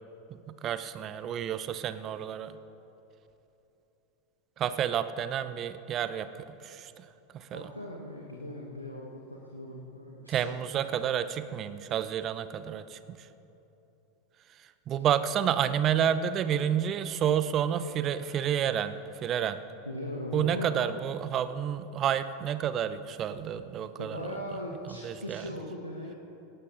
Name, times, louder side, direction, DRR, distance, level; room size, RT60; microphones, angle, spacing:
voice 1, 0.3-2.6 4.6-6.3 6.6-7.1 7.3-7.7 10.3-13.2 14.9-19.6 20.3-24.2 25.0-25.4, right 9 dB, 35° right, 13 dB, 0.6 m, -30 dB
voice 2, 7.5-10.6 15.0-15.1 19.8-21.0 24.0-26.1, left 1 dB, 90° left, -1 dB, 1.1 m, -39 dB
18.0 x 16.0 x 2.5 m, 3.0 s
figure-of-eight pair, 85°, 0 cm